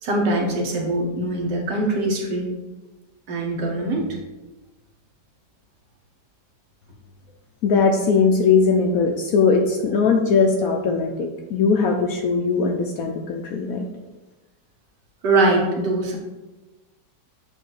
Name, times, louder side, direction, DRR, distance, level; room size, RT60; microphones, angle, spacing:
voice 1, 0.0-2.5 3.3-4.0 15.2-16.2, right 2 dB, 75° right, 0 dB, 1.7 m, -22 dB
voice 2, 7.6-13.9, left 5 dB, 70° left, 2 dB, 0.8 m, -20 dB
7.6 x 2.7 x 4.6 m, 1.1 s
omnidirectional pair, 1.9 m